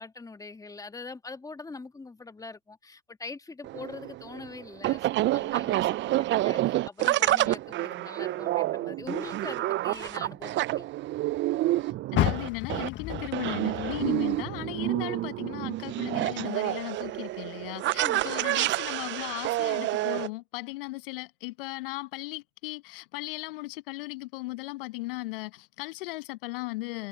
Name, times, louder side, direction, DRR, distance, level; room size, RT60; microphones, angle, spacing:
voice 1, 0.0-10.9 18.0-18.3, left 3 dB, 10° left, 1.7 m, -43 dB
sound 1, 3.6-20.3, right 16 dB, 40° right, 0.8 m, -28 dB
voice 2, 12.1-27.1, left 21 dB, 65° left, 1.3 m, -37 dB
Car, 12.1-15.4 15.8-17.2 17.6-17.7 18.3-18.4, left 13 dB, 40° left, 1.7 m, -33 dB
hypercardioid pair, 80°, 30 cm